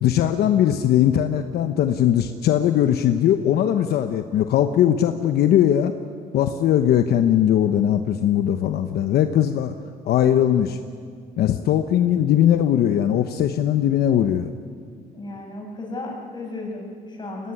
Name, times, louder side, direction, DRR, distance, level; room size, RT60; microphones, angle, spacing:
voice 1, 0.0-5.9 6.3-9.7 10.0-10.8 11.4-14.5, left 10 dB, 70° left, 8 dB, 1.0 m, -20 dB
voice 2, 15.1-17.5, left 2 dB, 25° left, -1 dB, 7.4 m, -34 dB
22.0 x 18.5 x 9.9 m, 2.1 s
cardioid pair, 110°, 17 cm